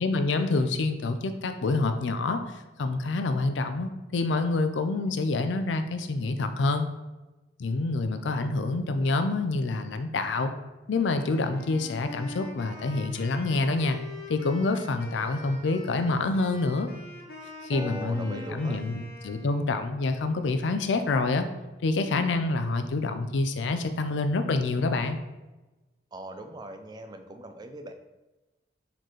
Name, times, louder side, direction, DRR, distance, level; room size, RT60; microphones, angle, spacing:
voice 1, 0.0-2.4 2.8-6.9 7.6-10.5 10.9-14.0 14.3-16.9 17.6-21.5 21.8-25.2, left 3 dB, 85° left, 8 dB, 0.4 m, -27 dB
Wind instrument woodwind instrument, 10.9-19.7, left 1 dB, 55° left, 0.9 m, -44 dB
voice 2, 17.7-18.8 26.1-27.9, right 1 dB, 25° right, 6 dB, 0.3 m, -40 dB
4.3 x 4.0 x 3.1 m, 1.1 s
head